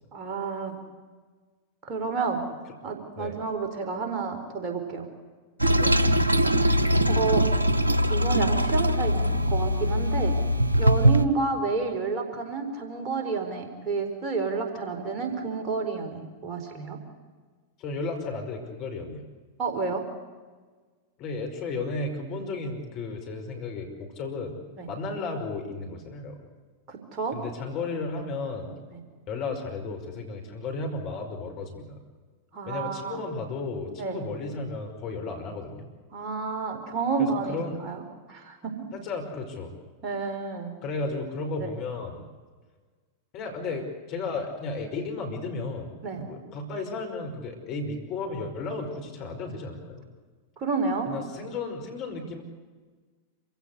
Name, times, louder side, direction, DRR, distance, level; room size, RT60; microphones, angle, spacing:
voice 1, 0.1-0.8 1.8-2.4 2.8-5.1 7.1-7.4 8.1-10.3 10.7-17.0 19.6-20.0 24.8-24.9 26.9-27.4 32.5-33.2 34.0-34.2 36.1-38.0 38.3-38.9 40.0-40.7 41.6-41.7 46.0-46.3 50.6-51.1, right 4 dB, 35° right, 3 dB, 4.5 m, -30 dB
Toilet flush, 5.6-11.2, equal, 85° right, 1.0 m, -22 dB
voice 2, 17.8-19.3 21.2-24.6 24.9-26.4 27.3-28.7 29.3-32.0 32.7-35.9 37.5-37.8 38.9-39.7 40.8-42.2 43.3-45.9 46.2-50.0 51.1-52.4, left 3 dB, 40° left, 4 dB, 5.4 m, -34 dB
27.0 x 16.5 x 8.3 m, 1.4 s
figure-of-eight pair, 95°, 0 cm